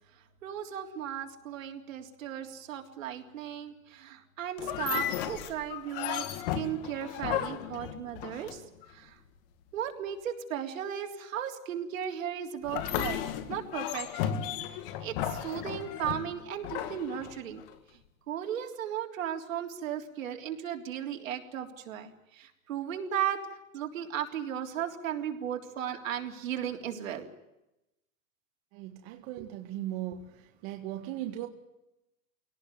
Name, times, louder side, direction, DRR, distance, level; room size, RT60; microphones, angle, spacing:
voice 1, 0.4-8.6 8.9-9.2 9.7-13.2 13.5-14.4 15.0-17.6 18.3-23.4 23.7-27.3, right 9 dB, 75° right, 4 dB, 3.7 m, -36 dB
sound 1, 4.6-8.9 12.6-17.7, left 10 dB, 40° left, 2.1 m, -35 dB
voice 2, 28.7-30.3 30.6-31.5, right 13 dB, 35° right, 5 dB, 1.8 m, -37 dB
23.5 x 18.0 x 9.4 m, 0.92 s
supercardioid pair, 165°, 40 cm